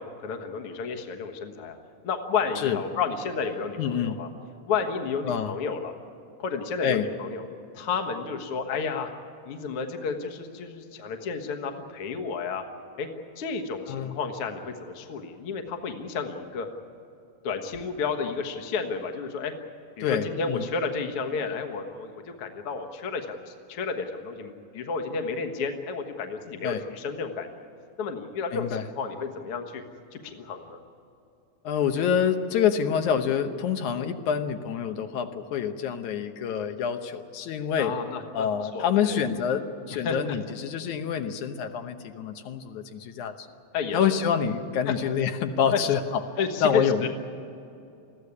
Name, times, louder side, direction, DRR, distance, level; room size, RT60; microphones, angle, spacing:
voice 1, 0.0-1.8 2.0-4.3 4.7-5.9 6.4-7.4 7.7-9.1 9.5-12.6 13.0-13.1 13.4-16.7 17.4-19.5 20.0-27.7 28.0-29.8 30.1-30.8 37.8-38.5 38.7-39.2 40.0-40.4 43.7-44.2 45.7-45.8 46.4-47.1, left 5 dB, 55° left, 5 dB, 2.1 m, -31 dB
voice 2, 3.8-4.2 5.2-5.6 6.8-7.0 13.9-14.2 20.0-20.7 26.6-26.8 28.5-28.9 31.6-37.9 38.3-43.5 43.9-47.1, left 8 dB, 75° left, 7 dB, 2.4 m, -27 dB
22.0 x 15.0 x 9.7 m, 2.7 s
omnidirectional pair, 3.5 m